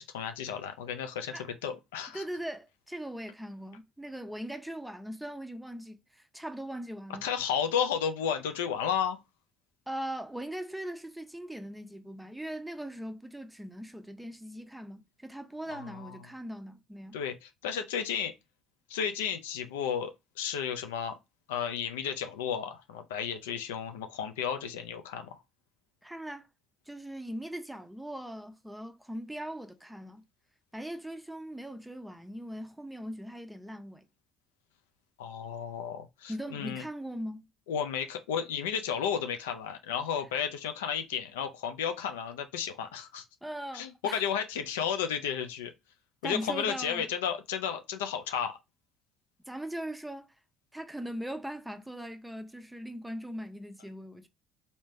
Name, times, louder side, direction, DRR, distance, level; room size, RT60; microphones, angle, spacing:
voice 1, 0.0-2.2 7.2-9.2 15.7-16.2 17.1-18.3 18.9-21.2 21.5-25.4 35.2-36.8 37.7-43.2 43.7-45.7 46.2-48.6, left 8 dB, 85° left, 0.4 m, -33 dB
voice 2, 2.1-7.3 9.9-17.2 26.0-26.5 26.9-30.2 30.7-34.0 36.3-37.5 43.4-44.2 46.2-47.1 49.5-50.3 50.7-54.3, right 1 dB, 5° right, 0.6 m, -40 dB
3.2 x 2.7 x 3.1 m
hypercardioid pair, 60°, 0 cm